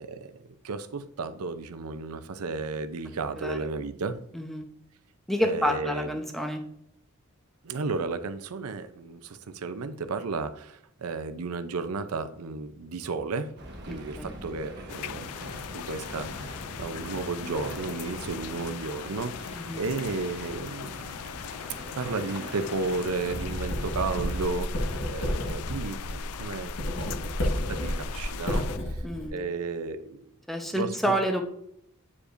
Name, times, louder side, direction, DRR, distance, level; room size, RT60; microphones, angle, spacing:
voice 1, 0.0-4.2 5.4-6.2 7.6-13.5 13.8-21.1 22.0-29.0 29.3-30.2 30.7-30.9, right 4 dB, 85° right, 11 dB, 0.6 m, -33 dB
voice 2, 4.3-4.7 5.3-6.6 13.9-14.3 19.5-19.8 29.0-29.4 30.5-31.4, equal, ahead, 3 dB, 0.7 m, -29 dB
sound 1, 13.6-27.2, right 1 dB, 50° right, 1.1 m, -43 dB
sound 2, 14.9-28.8, left 9 dB, 85° left, 0.3 m, -40 dB
Writing, 23.2-29.3, equal, 65° left, 1.5 m, -31 dB
8.3 x 4.9 x 2.6 m, 0.72 s
head